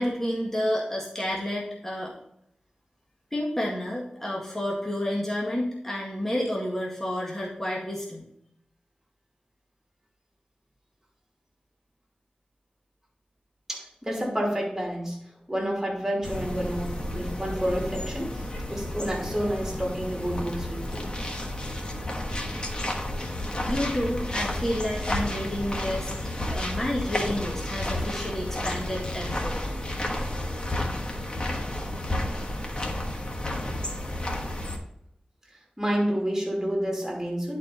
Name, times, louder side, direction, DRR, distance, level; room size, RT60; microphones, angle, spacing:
voice 1, 0.0-2.1 3.3-8.2 23.6-26.1 26.5-29.6, left 1 dB, 15° left, -4 dB, 1.8 m, -30 dB
voice 2, 13.7-15.2 15.5-21.1 35.8-37.6, equal, 10° right, -2 dB, 3.2 m, -29 dB
sound 1, 16.2-34.8, left 1 dB, 35° left, 1.3 m, -31 dB
10.0 x 4.6 x 4.0 m, 0.75 s
wide cardioid pair, 60°, 3 cm